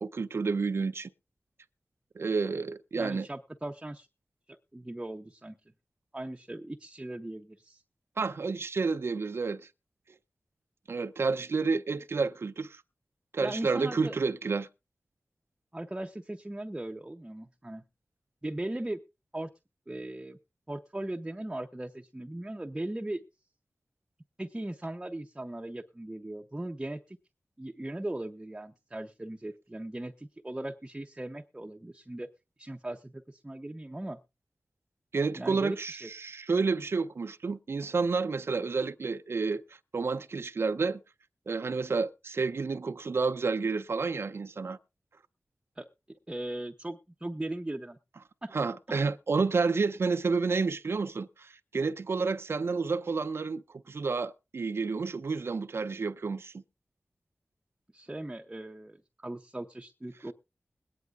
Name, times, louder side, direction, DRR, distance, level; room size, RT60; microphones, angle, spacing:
voice 1, 0.0-1.1 2.2-3.3 8.2-9.6 10.9-12.8 13.3-14.7 35.1-39.6 39.9-41.0 41.5-44.8 48.5-56.5, right 4 dB, 70° right, 0.5 m, -30 dB
voice 2, 3.0-4.1 4.5-5.6 6.1-7.8 13.4-14.1 15.7-17.8 18.4-19.0 19.3-19.5 19.9-20.4 20.7-23.2 24.4-27.2 27.6-32.3 32.6-34.2 35.3-36.1 45.8-48.0 48.4-48.5 57.9-59.0 59.2-60.3, right 1 dB, 15° right, 0.6 m, -38 dB
21.5 x 9.5 x 2.4 m
wide cardioid pair, 75°, 4 cm